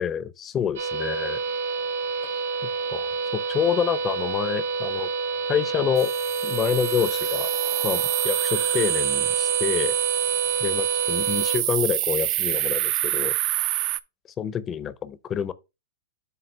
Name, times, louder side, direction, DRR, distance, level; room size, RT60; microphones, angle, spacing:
voice 1, 0.0-1.4 2.6-5.1 5.5-6.1 6.4-7.5 7.8-10.0 10.6-13.3 14.4-15.5, left 8 dB, 20° left, 0.6 m, -27 dB
sound 1, 0.8-11.6, right 4 dB, 80° right, 2.8 m, -28 dB
sound 2, 6.0-14.0, right 16 dB, 35° right, 0.4 m, -26 dB
7.9 x 2.7 x 6.1 m
hypercardioid pair, 145°, 0 cm